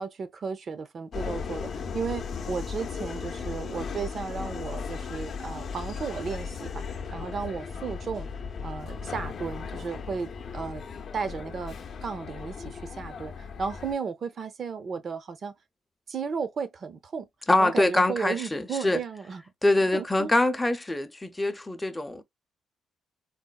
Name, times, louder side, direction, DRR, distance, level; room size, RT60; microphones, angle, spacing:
voice 1, 0.0-8.3 8.6-10.9 11.1-11.8 12.0-15.5 16.1-17.3 17.6-19.4 19.9-20.3, right 5 dB, 50° right, 0.6 m, -34 dB
Subway metro underground, 1.1-13.9, left 5 dB, 55° left, 0.6 m, -36 dB
voice 2, 17.5-19.0 19.6-22.2, left 2 dB, 10° left, 0.6 m, -24 dB
4.0 x 2.1 x 2.3 m
cardioid pair, 90°, 0 cm